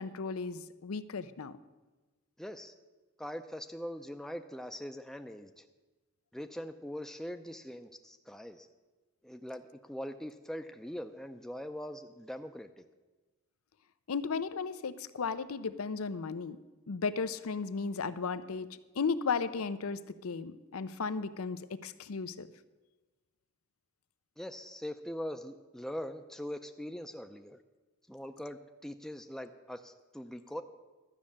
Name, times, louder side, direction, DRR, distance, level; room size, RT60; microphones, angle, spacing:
voice 1, 0.0-1.6 14.1-16.6 16.9-22.5, left 5 dB, 85° left, 14 dB, 0.6 m, -35 dB
voice 2, 2.4-2.7 3.2-5.7 6.3-8.7 9.2-12.8 24.4-27.6 28.1-30.6, equal, ahead, 6 dB, 0.4 m, -42 dB
12.5 x 6.5 x 8.5 m, 1.2 s
head